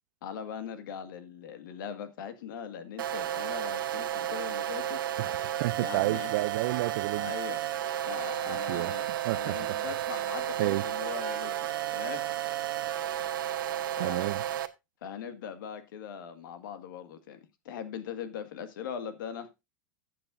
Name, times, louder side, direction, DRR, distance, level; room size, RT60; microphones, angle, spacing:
voice 1, 0.2-5.0 5.8-6.3 7.2-7.6 8.1-9.1 9.3-12.3 14.0-14.3 15.0-17.4 17.7-19.5, left 8 dB, 75° left, 1.8 m, -40 dB
sound 1, 3.0-14.7, right 12 dB, 85° right, 1.0 m, -32 dB
voice 2, 5.2-7.3 8.5-8.9 9.2-9.8 10.6-10.8 14.0-14.4, right 18 dB, 60° right, 0.4 m, -31 dB
14.5 x 7.7 x 2.6 m
supercardioid pair, 135°, 11 cm